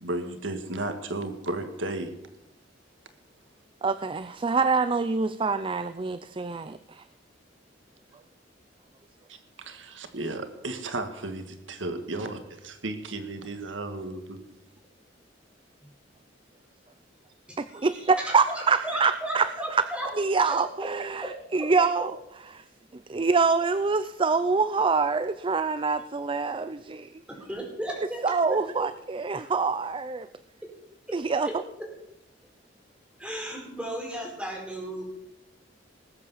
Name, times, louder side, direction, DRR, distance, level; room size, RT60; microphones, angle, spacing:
voice 1, 0.0-2.1 9.3-14.4, right 2 dB, 90° right, 7 dB, 1.9 m, -34 dB
voice 2, 3.8-7.0 17.6-19.8 20.2-22.1 22.5-22.6 23.1-27.2 28.2-30.3 31.1-31.5, right 4 dB, 30° right, 12 dB, 0.5 m, -25 dB
voice 3, 17.5-17.9 18.2-20.1 20.4-20.5 21.2-21.3 21.6-21.7 27.3-28.2 28.5-28.6 31.1-31.2 31.4-31.5 33.2-35.0, right 1 dB, 5° right, -1 dB, 4.9 m, -35 dB
19.5 x 8.3 x 7.3 m, 0.85 s
head